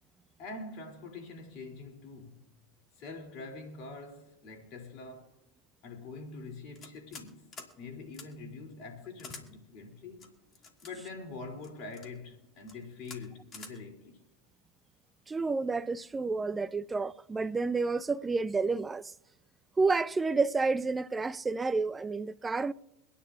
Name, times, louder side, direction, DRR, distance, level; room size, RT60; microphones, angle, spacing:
voice 1, 0.4-2.5 3.0-5.4 5.8-7.5 7.8-10.3 10.8-14.2, left 3 dB, 55° left, 2.8 m, -44 dB
sound 1, 6.8-7.3 7.5-7.7 8.1-8.3 9.2-9.4 10.2-10.9 11.6-12.1 12.6-12.8 13.0-13.2 13.5-13.7, left 4 dB, 35° left, 2.2 m, -47 dB
voice 2, 15.3-19.1 19.8-22.7, right 4 dB, 20° right, 0.5 m, -30 dB
24.5 x 10.0 x 2.5 m
hypercardioid pair, 85°, 0 cm